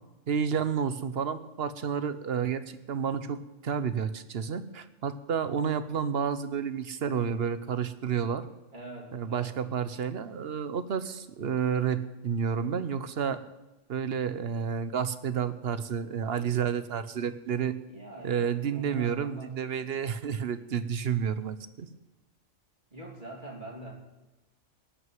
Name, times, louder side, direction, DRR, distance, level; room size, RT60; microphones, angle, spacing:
voice 1, 0.3-8.4 9.1-13.4 13.9-17.8 18.2-21.9, right 7 dB, 55° right, 13 dB, 1.0 m, -30 dB
voice 2, 8.7-9.5 17.9-20.0 22.9-23.9, right 3 dB, 40° right, -2 dB, 3.3 m, -44 dB
19.0 x 6.3 x 9.2 m, 1.0 s
omnidirectional pair, 1.3 m